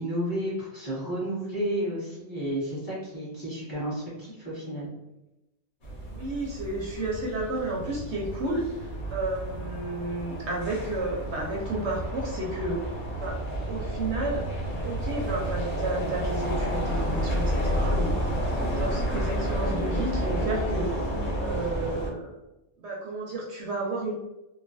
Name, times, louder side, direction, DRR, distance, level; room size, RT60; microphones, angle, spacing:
voice 1, 0.0-4.9, equal, 15° left, -9 dB, 1.5 m, -32 dB
sound 1, 5.8-22.1, equal, 60° left, 1.2 m, -30 dB
voice 2, 6.1-13.4 13.7-14.4 14.8-18.1 18.8-21.0 21.4-22.3 22.8-24.1, right 2 dB, 70° right, -2 dB, 0.9 m, -32 dB
3.1 x 2.2 x 2.5 m, 0.95 s
omnidirectional pair, 1.3 m